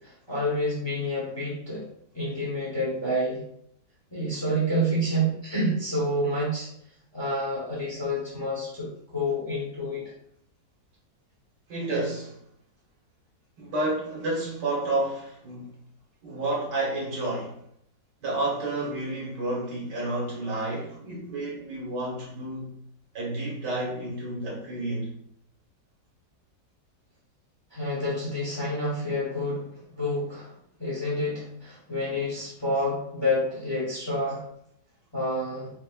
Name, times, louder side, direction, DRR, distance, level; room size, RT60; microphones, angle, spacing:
voice 1, 0.0-1.9 2.1-3.4 4.1-6.7 7.1-8.9 9.1-10.1 27.7-30.5 30.8-34.4 35.1-35.7, equal, 15° left, 1.1 m, -28 dB
voice 2, 11.7-12.4 13.6-15.7 16.2-17.5 18.2-22.7 23.1-25.1 32.7-32.8, right 2 dB, 75° right, 2.0 m, -30 dB
4.1 x 3.5 x 2.5 m
omnidirectional pair, 1.8 m